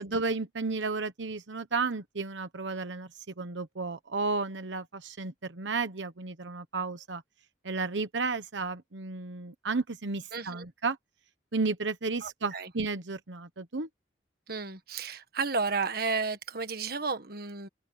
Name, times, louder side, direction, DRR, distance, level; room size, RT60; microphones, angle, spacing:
voice 1, 0.0-7.2 7.6-11.0 11.5-13.9, right 3 dB, 80° right, 1.1 m, -33 dB
voice 2, 10.3-10.6 12.2-12.7 14.5-17.7, right 4 dB, 55° right, 1.6 m, -32 dB
open air
head